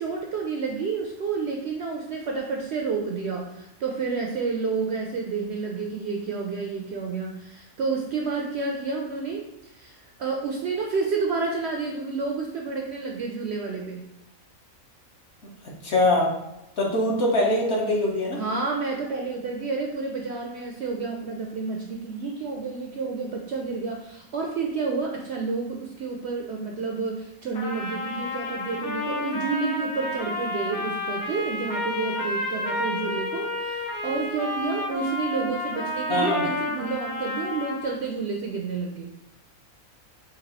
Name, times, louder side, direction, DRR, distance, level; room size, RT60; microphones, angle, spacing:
voice 1, 0.0-14.0 18.4-39.1, right 4 dB, 65° right, 1 dB, 0.7 m, -30 dB
voice 2, 15.8-16.3 16.8-18.4 36.1-36.4, left 1 dB, 50° left, -3 dB, 1.2 m, -22 dB
Trumpet, 27.5-38.0, left 2 dB, 85° left, 1.3 m, -31 dB
4.2 x 2.6 x 4.0 m, 0.87 s
omnidirectional pair, 1.5 m